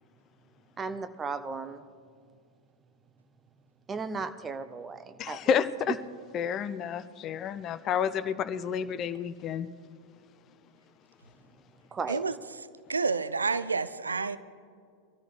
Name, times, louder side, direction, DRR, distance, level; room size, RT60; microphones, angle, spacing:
voice 1, 0.8-1.8 3.9-5.4 11.9-12.2, right 4 dB, 20° right, 10 dB, 0.7 m, -35 dB
voice 2, 5.2-6.0 6.3-9.7, left 8 dB, 30° left, 14 dB, 0.5 m, -30 dB
voice 3, 12.9-14.4, right 4 dB, 75° right, 14 dB, 0.5 m, -29 dB
22.5 x 13.5 x 3.2 m, 2.2 s
figure-of-eight pair, 90°, 0 cm